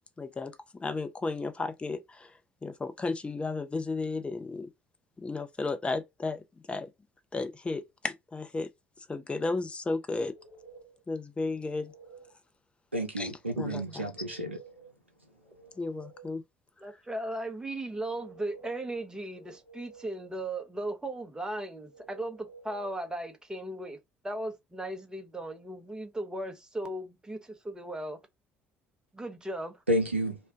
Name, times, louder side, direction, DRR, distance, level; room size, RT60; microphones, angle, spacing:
voice 1, 0.2-2.3 2.6-4.7 5.2-6.4 6.7-6.9 7.3-8.7 9.1-10.3 11.1-11.9 13.2-14.1 15.8-16.4, left 3 dB, 20° left, 0.6 m, -34 dB
sound 1, 10.2-11.0 11.5-12.4 14.0-15.0 15.3-16.4 17.8-18.9 19.3-20.3 21.9-22.9, right 5 dB, 80° left, 0.9 m, -53 dB
voice 2, 12.9-14.6 29.9-30.4, equal, 90° right, 0.4 m, -30 dB
voice 3, 16.8-24.0 24.2-28.2 29.1-29.8, right 1 dB, 10° right, 0.8 m, -37 dB
2.5 x 2.1 x 3.6 m
figure-of-eight pair, 55°, 6 cm